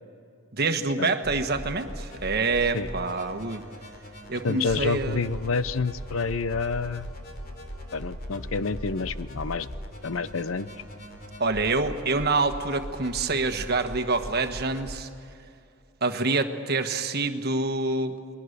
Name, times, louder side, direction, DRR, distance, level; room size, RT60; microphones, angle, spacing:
voice 1, 0.5-3.6 4.3-5.2 11.4-15.1 16.0-18.2, right 3 dB, 45° right, 7 dB, 1.3 m, -26 dB
sound 1, 1.2-14.9, equal, 45° left, 3.3 m, -40 dB
voice 2, 4.4-7.1 7.9-9.7 10.0-10.7, left 4 dB, 60° left, 15 dB, 0.6 m, -28 dB
29.5 x 22.0 x 6.7 m, 2.5 s
head